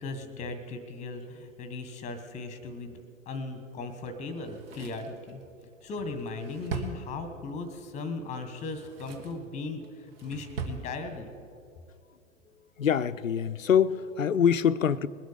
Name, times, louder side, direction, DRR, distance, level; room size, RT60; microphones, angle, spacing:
voice 1, 0.0-5.4 5.8-11.3, left 3 dB, 20° left, 9 dB, 1.3 m, -37 dB
Drawer open or close, 4.3-7.6 8.5-9.4 9.8-10.8 11.1-11.2, right 4 dB, 45° right, 1.6 m, -40 dB
voice 2, 12.8-15.1, left 8 dB, 80° left, 15 dB, 0.6 m, -24 dB
21.0 x 8.1 x 5.0 m, 2.4 s
figure-of-eight pair, 105°, 39 cm